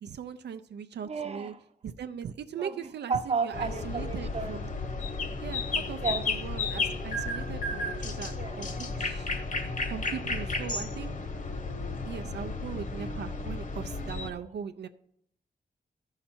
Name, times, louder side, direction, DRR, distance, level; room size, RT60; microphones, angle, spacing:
voice 1, 0.0-1.5 1.8-4.7 5.4-9.3 9.9-11.1 12.0-14.9, right 7 dB, 80° right, 0.5 m, -39 dB
voice 2, 1.1-1.5 2.6-2.7 3.1-4.6 6.0-6.2 8.4-8.6, right 5 dB, 40° right, 0.7 m, -32 dB
sound 1, 3.5-14.3, left 3 dB, 50° left, 1.0 m, -33 dB
13.0 x 5.7 x 4.3 m
wide cardioid pair, 120°, 17 cm